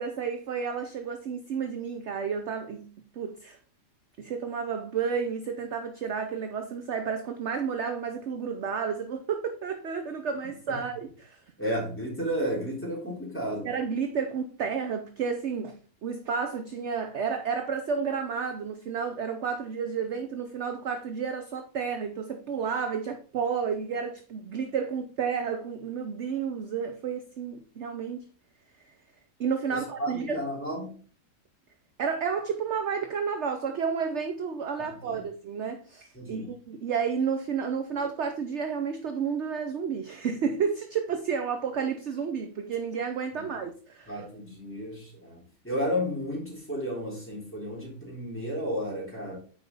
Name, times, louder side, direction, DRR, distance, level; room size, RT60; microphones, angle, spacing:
voice 1, 0.0-2.9 3.2-3.6 4.2-11.4 13.6-28.3 29.4-30.4 32.0-44.2, right 6 dB, 55° right, 0.9 m, -31 dB
voice 2, 11.6-13.7 29.7-30.9 34.8-35.2 36.1-36.4 44.1-49.4, equal, 5° left, 3.3 m, -33 dB
8.6 x 4.9 x 3.9 m
omnidirectional pair, 1.7 m